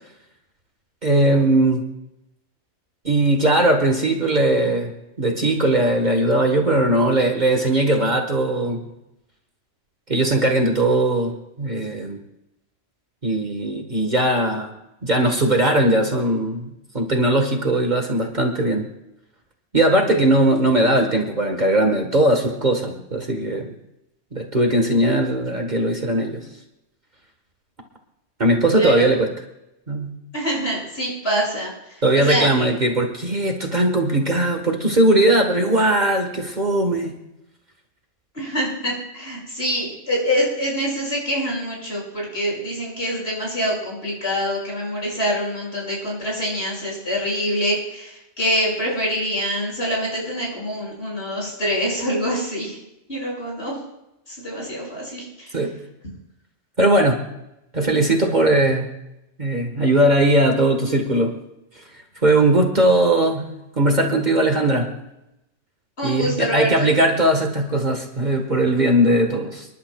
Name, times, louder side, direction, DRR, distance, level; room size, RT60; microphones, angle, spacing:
voice 1, 1.0-1.8 3.1-4.9 5.2-8.8 10.1-12.2 13.2-14.7 15.0-18.9 19.7-23.7 24.3-26.4 28.4-29.3 29.9-30.1 32.0-37.1 55.5-55.7 56.8-57.2 57.7-58.9 59.4-61.3 62.2-63.4 63.8-64.9 66.0-69.7, right 1 dB, 40° right, 3 dB, 1.6 m, -19 dB
voice 2, 30.3-31.7 32.1-32.7 38.4-52.8 53.1-53.8 54.3-55.2 66.0-66.9, equal, 55° left, -4 dB, 6.9 m, -25 dB
29.5 x 11.0 x 2.4 m, 0.87 s
omnidirectional pair, 1.2 m